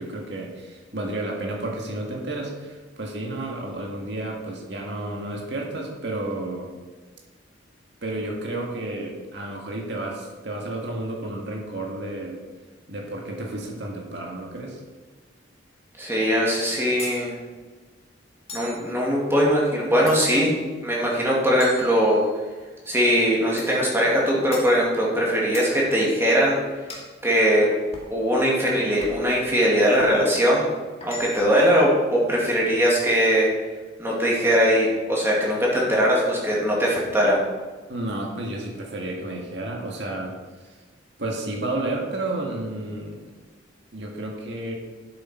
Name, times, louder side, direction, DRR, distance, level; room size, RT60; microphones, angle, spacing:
voice 1, 0.0-6.7 8.0-12.4 12.9-14.8 37.9-40.3 40.6-40.8 41.2-43.2 43.9-44.7, right 2 dB, 65° right, -1 dB, 1.9 m, -31 dB
voice 2, 16.0-17.3 18.5-20.5 20.8-22.2 22.9-26.6 27.2-27.7 28.1-30.7 31.0-33.5 34.0-37.4, equal, 15° right, -4 dB, 2.6 m, -20 dB
sound 1, 17.0-17.2 18.5-18.8 20.1-20.5 21.6-22.5 23.6-23.9 24.5-24.8 25.5-25.8 26.9-27.1 27.9-28.2 29.0-29.3 30.0-30.2 31.0-31.6, left 3 dB, 35° left, 1.9 m, -39 dB
10.5 x 8.2 x 4.5 m, 1.4 s
head